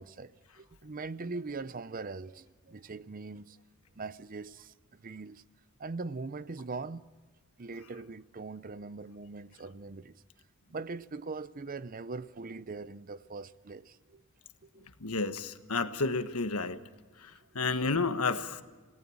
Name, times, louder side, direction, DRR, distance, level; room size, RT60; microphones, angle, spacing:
voice 1, 0.0-3.6 4.0-5.4 5.8-7.1 7.6-10.2 10.7-14.2 14.7-14.9 16.6-16.7 17.5-17.7, right 3 dB, 40° right, 0.6 m, -41 dB
voice 2, 15.0-16.8 17.2-18.6, left 3 dB, 90° left, 1.4 m, -31 dB
28.0 x 18.5 x 7.2 m
head